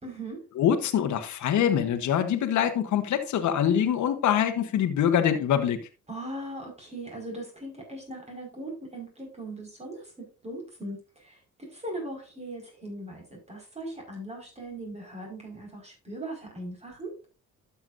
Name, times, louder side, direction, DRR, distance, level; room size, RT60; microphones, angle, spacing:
voice 1, 0.0-0.4 6.1-17.1, right 1 dB, 20° right, 4.9 m, -39 dB
voice 2, 0.6-5.8, left 9 dB, 70° left, 1.2 m, -24 dB
12.0 x 7.0 x 2.6 m
cardioid pair, 90°, 30 cm